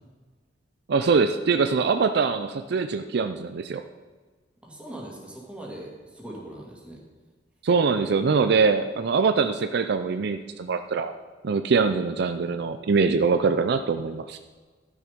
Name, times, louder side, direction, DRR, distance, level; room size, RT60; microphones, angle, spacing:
voice 1, 0.9-3.8 7.6-11.1 11.4-14.4, right 5 dB, 60° right, 9 dB, 0.4 m, -23 dB
voice 2, 4.6-7.0, right 1 dB, 5° right, -3 dB, 2.2 m, -40 dB
12.0 x 6.5 x 5.1 m, 1.4 s
head